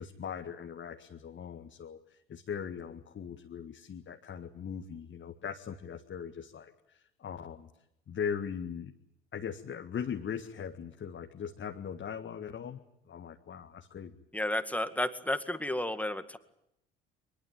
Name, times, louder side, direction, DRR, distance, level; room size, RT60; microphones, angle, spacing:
voice 1, 0.0-7.7 8.1-8.9 9.3-12.8 13.1-14.2, left 7 dB, 40° left, 4 dB, 1.9 m, -40 dB
voice 2, 14.3-16.4, left 1 dB, 5° left, 10 dB, 2.0 m, -32 dB
23.0 x 20.5 x 9.0 m, 0.79 s
hypercardioid pair, 60°, 29 cm